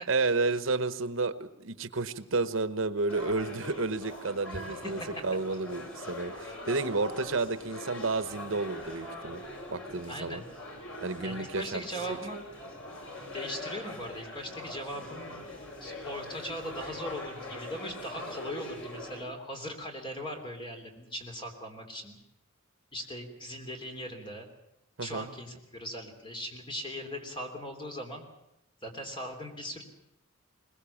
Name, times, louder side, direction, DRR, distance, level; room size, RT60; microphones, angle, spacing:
voice 1, 0.1-9.4 9.7-10.4 11.0-11.8 12.1-12.2 25.0-25.3, right 3 dB, 70° right, 12 dB, 1.0 m, -31 dB
sound 1, 3.1-19.2, left 1 dB, 70° left, 6.1 m, -42 dB
voice 2, 10.1-10.5 11.2-12.4 13.3-15.4 15.8-22.2 22.9-24.5 25.0-28.3 28.8-29.8, equal, 25° left, 4 dB, 3.3 m, -39 dB
21.5 x 21.0 x 7.2 m, 0.83 s
head